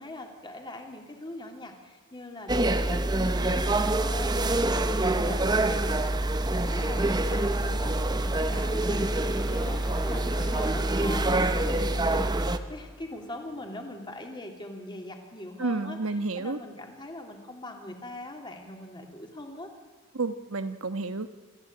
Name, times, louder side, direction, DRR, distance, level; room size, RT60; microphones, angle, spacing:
voice 1, 0.0-19.7, left 1 dB, 20° left, 3 dB, 3.0 m, -42 dB
sound 1, 2.5-12.6, right 2 dB, 20° right, 0.9 m, -26 dB
sound 2, 3.1-13.9, equal, ahead, 2.7 m, -46 dB
voice 2, 15.6-16.6 20.1-21.3, right 3 dB, 70° right, 10 dB, 1.3 m, -30 dB
27.0 x 14.5 x 8.8 m, 1.3 s
head